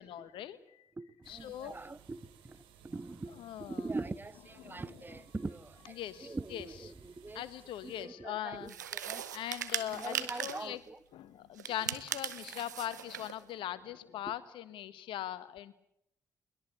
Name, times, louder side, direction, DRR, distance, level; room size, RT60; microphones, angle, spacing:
voice 1, 0.0-0.8 1.3-1.8 3.4-3.8 4.6-4.8 6.0-6.7 7.3-8.7 9.3-10.8 11.1-15.8, left 12 dB, 65° left, 1.6 m, -41 dB
voice 2, 1.0-7.4 7.8-9.2 9.9-11.0 14.2-14.4, right 3 dB, 20° right, 1.2 m, -43 dB
sound 1, 1.2-8.1, right 9 dB, 70° right, 3.0 m, -60 dB
sound 2, 8.7-10.7 11.6-13.4, right 9 dB, 90° right, 0.9 m, -39 dB
22.5 x 20.5 x 8.4 m
hypercardioid pair, 40°, 9 cm